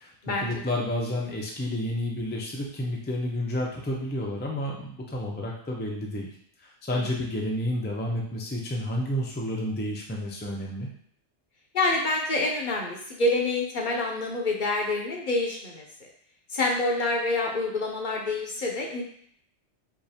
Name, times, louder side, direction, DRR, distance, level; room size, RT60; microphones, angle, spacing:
voice 1, 0.0-6.3 6.6-10.9, left 1 dB, 15° left, -1 dB, 0.3 m, -30 dB
voice 2, 11.7-15.8 16.5-19.0, left 2 dB, 50° left, -1 dB, 0.7 m, -27 dB
4.6 x 2.4 x 2.7 m, 0.65 s
omnidirectional pair, 1.2 m